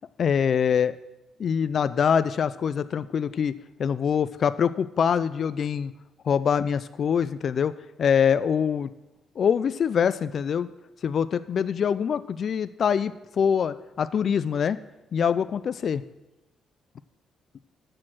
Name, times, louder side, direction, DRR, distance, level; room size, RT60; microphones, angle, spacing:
voice 1, 0.2-1.0 1.4-3.5 3.8-5.9 6.2-7.7 8.0-8.9 9.4-10.7 11.0-14.8 15.1-16.0, left 7 dB, 55° left, 15 dB, 0.3 m, -24 dB
6.4 x 6.3 x 7.5 m, 0.99 s
cardioid pair, 90°, 0 cm